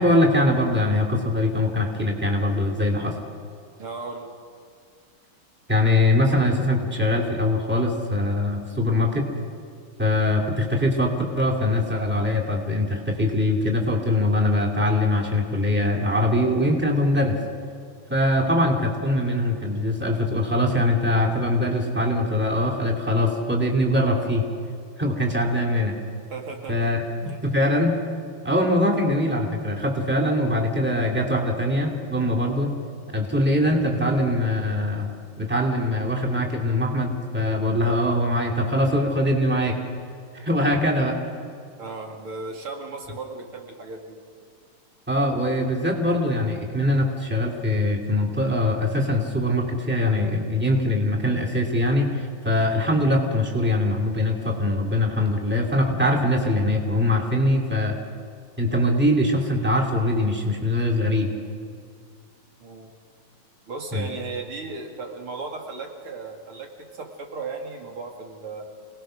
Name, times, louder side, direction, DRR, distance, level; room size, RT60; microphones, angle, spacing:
voice 1, 0.0-3.1 5.7-9.3 10.0-17.4 18.1-24.4 25.0-26.0 26.7-27.0 27.5-28.0 28.4-32.7 33.1-35.1 35.4-39.8 40.4-41.2 45.1-57.9 58.6-61.3 63.9-64.1, left 1 dB, 5° right, 0 dB, 2.6 m, -22 dB
voice 2, 3.8-4.3 26.3-26.9 27.2-27.4 41.8-44.2 62.6-62.9 63.7-68.7, right 4 dB, 85° right, 2 dB, 3.2 m, -36 dB
27.0 x 19.0 x 6.5 m, 2.2 s
omnidirectional pair, 2.4 m